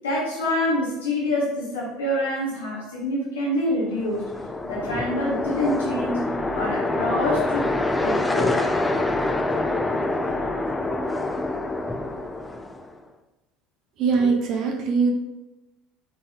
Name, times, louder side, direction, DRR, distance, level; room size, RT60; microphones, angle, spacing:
voice 1, 0.0-4.3 4.6-6.2 6.5-7.7 8.0-8.6, left 1 dB, 85° left, -6 dB, 1.1 m, -26 dB
sound 1, 3.9-12.9, left 2 dB, 15° left, 0.4 m, -26 dB
voice 2, 14.0-15.1, right 5 dB, 60° right, 2 dB, 0.7 m, -21 dB
3.9 x 3.8 x 2.4 m, 0.99 s
hypercardioid pair, 70°, 0 cm